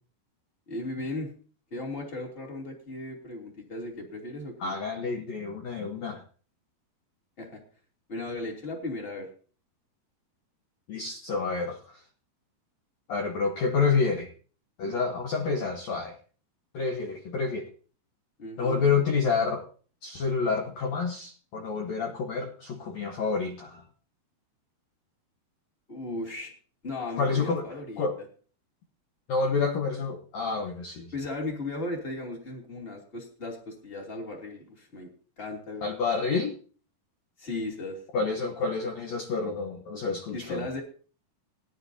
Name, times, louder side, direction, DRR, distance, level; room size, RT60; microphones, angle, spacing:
voice 1, 0.7-1.3 1.7-4.7 7.4-7.6 8.1-9.3 18.4-18.9 25.9-26.5 26.8-28.1 31.1-35.1 35.4-35.8 37.4-38.0 40.3-40.8, left 2 dB, 15° left, 0 dB, 2.2 m, -36 dB
voice 2, 4.6-6.2 10.9-12.0 13.1-14.3 14.8-16.1 16.7-17.7 18.6-19.6 20.0-23.8 27.2-27.7 28.0-28.1 29.3-31.1 35.8-36.5 38.1-40.7, left 4 dB, 70° left, 2 dB, 1.7 m, -28 dB
19.5 x 10.5 x 2.7 m, 0.41 s
omnidirectional pair, 4.8 m